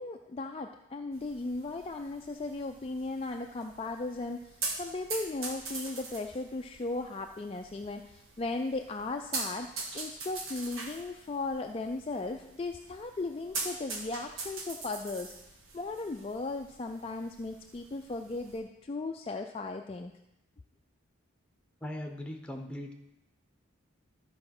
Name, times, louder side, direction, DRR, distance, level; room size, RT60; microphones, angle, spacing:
voice 1, 0.0-15.3 15.7-20.1, left 3 dB, 25° left, 4 dB, 0.3 m, -37 dB
sound 1, 1.1-18.6, right 3 dB, 75° right, 1.6 m, -43 dB
voice 2, 21.8-22.9, left 1 dB, 5° left, 3 dB, 0.9 m, -39 dB
13.0 x 4.9 x 6.0 m, 0.86 s
head